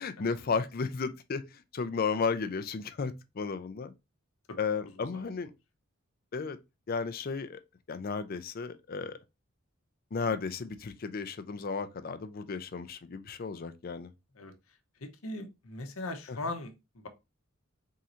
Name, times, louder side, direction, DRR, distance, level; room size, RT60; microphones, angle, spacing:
voice 1, 0.0-3.9 4.6-5.5 6.3-6.6 6.9-7.6 7.9-9.2 10.1-14.1 16.3-16.4, left 5 dB, 45° left, 0.4 m, -34 dB
voice 2, 4.9-5.4 14.3-14.5 15.0-17.1, left 2 dB, 85° left, 0.9 m, -40 dB
3.7 x 2.6 x 4.3 m
head